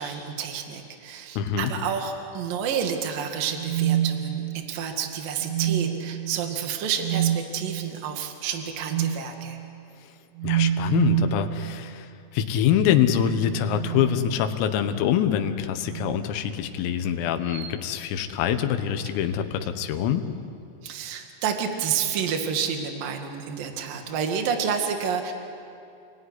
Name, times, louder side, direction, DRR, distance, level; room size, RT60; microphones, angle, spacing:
voice 1, 0.0-9.6 20.8-25.3, right 7 dB, 55° right, 4 dB, 3.1 m, -29 dB
voice 2, 1.4-1.7 10.4-20.3, left 9 dB, 85° left, 8 dB, 3.9 m, -25 dB
sound 1, 3.4-4.8 5.4-6.2 7.0-7.4 8.9-9.2 10.4-11.4 12.9-14.7 15.8-16.3 17.5-17.8, right 11 dB, 75° right, 3.6 m, -27 dB
29.5 x 18.0 x 9.7 m, 2.5 s
omnidirectional pair, 5.9 m